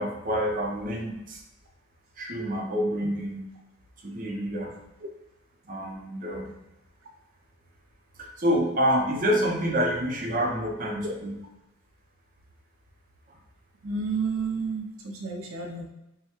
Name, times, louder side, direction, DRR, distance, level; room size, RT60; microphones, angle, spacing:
voice 1, 0.0-1.4 2.2-3.5 4.0-4.8 5.6-6.5 8.2-11.4, equal, 40° right, 0 dB, 0.7 m, -27 dB
voice 2, 13.8-15.8, right 4 dB, 80° right, 1 dB, 0.6 m, -31 dB
5.5 x 2.2 x 3.0 m, 0.92 s
head